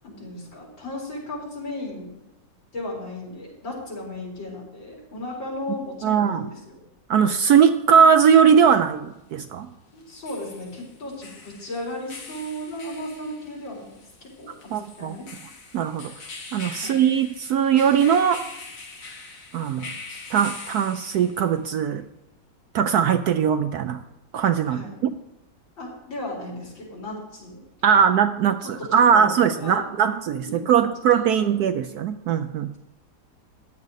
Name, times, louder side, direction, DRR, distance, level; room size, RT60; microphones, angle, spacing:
voice 1, 0.0-2.1 2.7-6.8 9.9-13.9 14.4-15.2 16.8-17.0 24.7-25.0 25.8-27.6 27.9-28.1 28.6-29.9 30.4-31.5, left 1 dB, 80° left, -3 dB, 4.9 m, -35 dB
voice 2, 6.0-6.5 7.1-9.7 14.7-15.1 15.7-16.1 16.5-18.4 19.5-19.9 20.3-22.0 22.7-24.0 24.3-25.1 27.8-32.8, right 7 dB, 70° right, 10 dB, 0.9 m, -20 dB
sound 1, 7.4-7.5 10.0-21.6, left 4 dB, 45° left, 2.0 m, -42 dB
14.5 x 10.5 x 4.0 m, 0.91 s
omnidirectional pair, 2.0 m